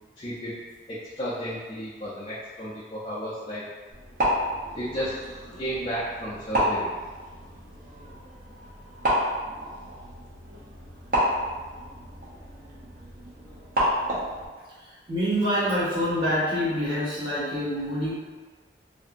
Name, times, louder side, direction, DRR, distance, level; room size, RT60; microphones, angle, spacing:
voice 1, 0.2-0.5 0.9-3.6 4.7-5.2 5.5-6.9, equal, 30° left, -9 dB, 0.4 m, -33 dB
sound 1, 3.9-14.5, equal, 50° right, 0.7 m, -30 dB
voice 2, 14.8-18.1, equal, 25° right, -13 dB, 0.9 m, -26 dB
2.8 x 2.6 x 2.5 m, 1.4 s
head